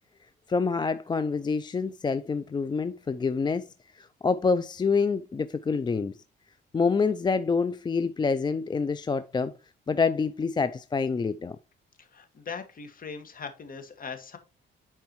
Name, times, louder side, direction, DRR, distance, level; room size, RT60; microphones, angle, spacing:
voice 1, 0.5-3.7 3.9-6.1 6.7-9.5 9.9-11.6, left 4 dB, 20° left, 0.4 m, -27 dB
voice 2, 12.0-14.4, left 5 dB, 45° left, 1.9 m, -40 dB
10.5 x 4.6 x 3.1 m
cardioid pair, 90°, 20 cm